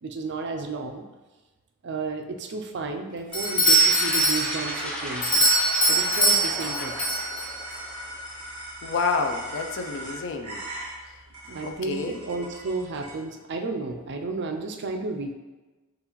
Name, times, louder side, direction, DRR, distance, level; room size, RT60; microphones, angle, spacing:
voice 1, 0.0-1.0 1.8-5.5 5.9-7.2 11.5-15.3, right 3 dB, 55° right, 4 dB, 0.4 m, -32 dB
Doorbell, 3.3-7.8, right 1 dB, 20° left, 0.9 m, -22 dB
sound 1, 3.3-13.1, right 1 dB, 25° right, 1.5 m, -40 dB
sound 2, 3.6-8.3, equal, 5° left, 0.6 m, -34 dB
voice 2, 8.8-10.6 11.0-11.1 11.6-12.2, left 4 dB, 60° left, 5 dB, 0.4 m, -29 dB
6.7 x 2.4 x 3.0 m, 1.2 s
head